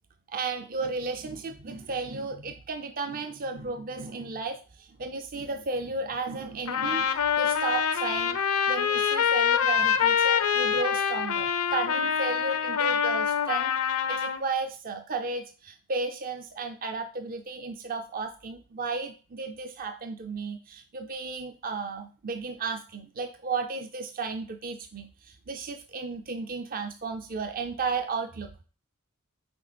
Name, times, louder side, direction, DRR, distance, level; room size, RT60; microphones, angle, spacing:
voice 1, 0.3-8.4 8.7-13.7 14.1-28.6, right 4 dB, 40° right, 7 dB, 0.5 m, -34 dB
Trumpet, 6.7-14.4, left 7 dB, 80° left, 0.6 m, -25 dB
6.0 x 4.4 x 5.1 m, 0.38 s
head